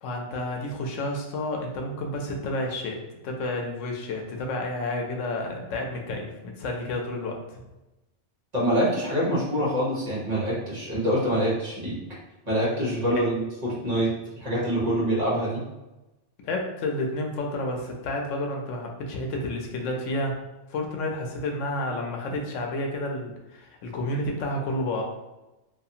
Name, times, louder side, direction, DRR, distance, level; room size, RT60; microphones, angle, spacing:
voice 1, 0.0-3.0 3.2-7.6 13.1-13.2 16.4-20.4 20.7-25.0, left 1 dB, 85° left, 2 dB, 0.9 m, -30 dB
voice 2, 8.5-12.0 12.5-14.1 14.4-15.6, equal, 35° right, -8 dB, 0.9 m, -25 dB
2.6 x 2.4 x 2.7 m, 1.0 s
omnidirectional pair, 1.3 m